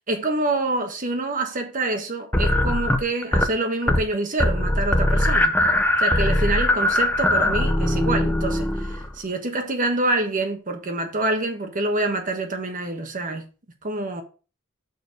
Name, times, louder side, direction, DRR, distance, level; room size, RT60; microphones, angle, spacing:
voice 1, 0.1-5.6 6.0-13.5 13.8-14.2, right 2 dB, 40° right, 1.3 m, -26 dB
sound 1, 2.3-3.5 3.8-4.1 4.4-9.1, left 1 dB, 10° left, 0.6 m, -21 dB
6.5 x 4.5 x 5.2 m
head